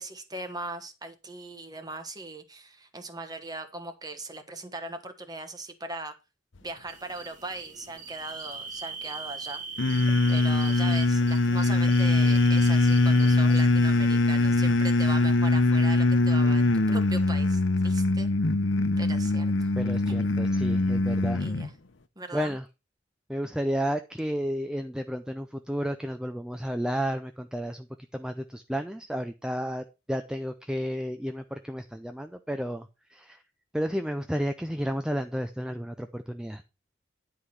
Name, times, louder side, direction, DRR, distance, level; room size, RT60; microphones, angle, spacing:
voice 1, 0.0-6.1 6.6-9.6 10.3-18.3 19.0-19.7 20.0-20.1 21.4-21.7 22.2-22.6, right 2 dB, 20° right, 7 dB, 1.3 m, -39 dB
sound 1, 6.9-13.6, right 4 dB, 40° right, 1.7 m, -41 dB
sound 2, 9.8-21.7, left 2 dB, 80° left, 0.8 m, -22 dB
voice 2, 19.8-21.4 22.3-22.7 23.3-27.9 28.1-33.4 33.7-36.6, equal, 5° right, 7 dB, 0.4 m, -32 dB
10.5 x 4.9 x 5.6 m, 0.29 s
head